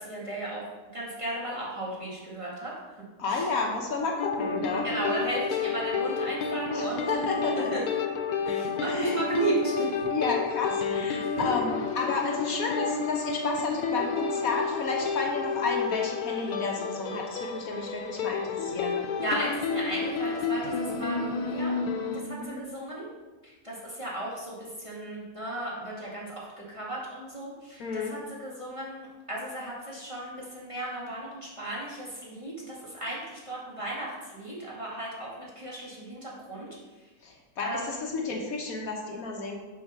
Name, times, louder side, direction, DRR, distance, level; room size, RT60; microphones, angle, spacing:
voice 1, 0.0-2.7 3.3-3.5 4.8-7.2 7.7-7.8 8.4-9.9 11.2-11.4 19.2-21.7 22.1-23.1 23.4-37.1 37.6-38.0, right 1 dB, 20° right, -6 dB, 2.1 m, -35 dB
voice 2, 3.2-4.8 6.7-7.7 8.9-9.3 10.1-19.0 22.4-22.6 27.8-28.1 37.2-39.6, left 4 dB, 65° left, 0 dB, 1.4 m, -31 dB
sound 1, 4.2-22.2, left 5 dB, 85° left, 1.3 m, -30 dB
7.7 x 4.4 x 6.0 m, 1.2 s
omnidirectional pair, 1.6 m